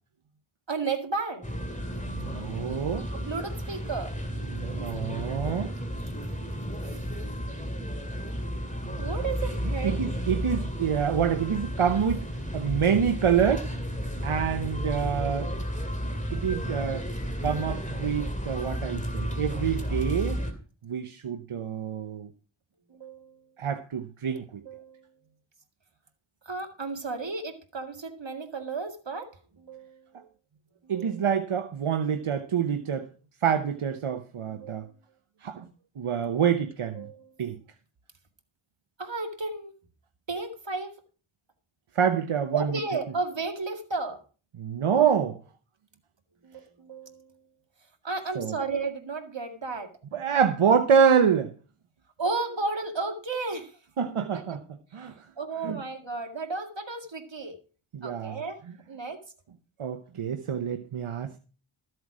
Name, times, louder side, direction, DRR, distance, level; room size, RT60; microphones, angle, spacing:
voice 1, 0.7-1.5 3.1-4.1 9.0-10.0 22.9-23.5 24.3-24.4 24.6-25.1 26.5-30.1 30.8-31.3 34.5-34.9 36.9-37.4 39.0-39.7 40.3-41.0 42.5-44.2 46.4-47.4 48.0-49.9 52.2-53.7 54.5-54.6 55.4-57.6 58.0-59.2, right 3 dB, 60° right, 2.2 m, -33 dB
sound 1, 1.4-20.5, equal, 15° left, 2.5 m, -32 dB
voice 2, 2.1-3.0 4.5-5.7 8.9-9.1 10.0-12.2 12.5-13.7 14.2-15.5 16.3-17.1 17.4-20.4 20.8-22.3 23.6-24.5 30.9-33.1 33.4-34.8 35.4-35.7 36.0-37.1 37.4-37.6 42.0-42.6 44.6-45.4 48.4-48.5 50.1-51.5 54.0-54.6 54.9-55.1 55.6-55.8 57.9-58.4 59.8-61.3, right 7 dB, 80° right, 0.9 m, -26 dB
13.5 x 7.9 x 4.9 m
wide cardioid pair, 55°, 50 cm